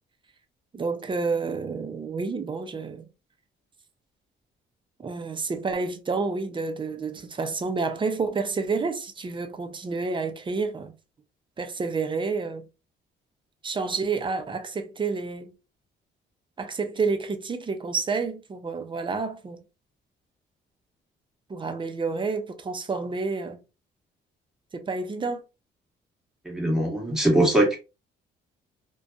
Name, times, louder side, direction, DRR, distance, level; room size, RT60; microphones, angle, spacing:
voice 1, 0.7-3.1 5.0-10.9 11.6-12.7 13.6-15.5 16.6-19.6 21.5-23.6 24.7-25.4, right 4 dB, 25° right, 0.5 m, -29 dB
voice 2, 26.4-27.8, right 1 dB, ahead, 1.2 m, -21 dB
2.5 x 2.2 x 2.4 m
cardioid pair, 90°, 20 cm